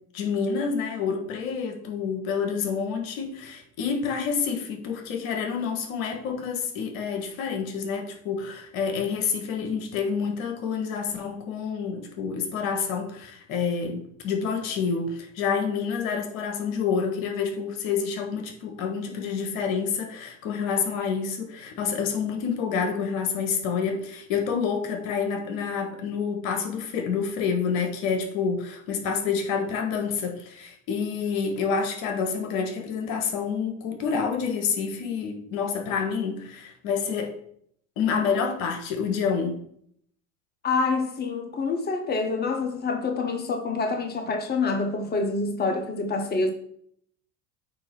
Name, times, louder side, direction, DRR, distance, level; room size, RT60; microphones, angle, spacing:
voice 1, 0.1-37.4 38.0-39.6, left 6 dB, 65° left, 1.5 m, -28 dB
voice 2, 40.6-46.5, left 3 dB, 20° left, 1.1 m, -26 dB
8.5 x 3.0 x 4.6 m
hypercardioid pair, 85°, 43 cm